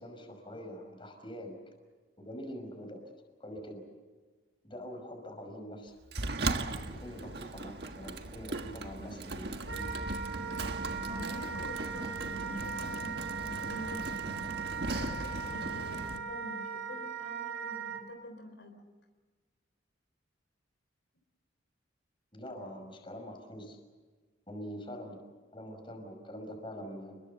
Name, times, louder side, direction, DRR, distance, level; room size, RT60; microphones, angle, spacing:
voice 1, 0.0-1.6 2.2-3.0 3.4-3.8 4.6-5.9 6.6-9.9 22.3-23.8 24.5-25.2 25.5-27.2, equal, 25° left, 4 dB, 5.6 m, -44 dB
Sliding door, 6.1-16.2, right 2 dB, 55° right, 1.5 m, -38 dB
Wind instrument woodwind instrument, 9.7-18.0, right 5 dB, 85° right, 3.9 m, -39 dB
voice 2, 11.1-18.7, equal, 65° left, 6 dB, 3.6 m, -47 dB
30.0 x 22.0 x 7.0 m, 1.4 s
head